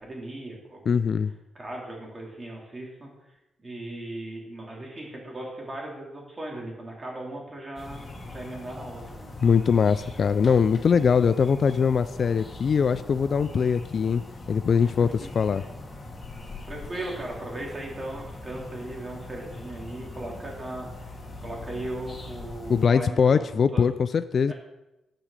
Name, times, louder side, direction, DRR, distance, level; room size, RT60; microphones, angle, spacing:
voice 1, 0.0-1.1 1.5-3.1 3.6-9.3 9.8-9.9 14.8-14.9 16.6-23.4 23.7-23.9 24.5-24.6, right 1 dB, 30° right, -2 dB, 3.6 m, -38 dB
voice 2, 0.9-1.3 9.4-14.2 14.5-15.6 22.7-24.5, left 6 dB, 50° left, 11 dB, 0.4 m, -22 dB
sound 1, 7.8-22.9, left 2 dB, 30° left, 2.6 m, -41 dB
10.5 x 6.1 x 6.6 m, 0.95 s
cardioid pair, 95°, 0 cm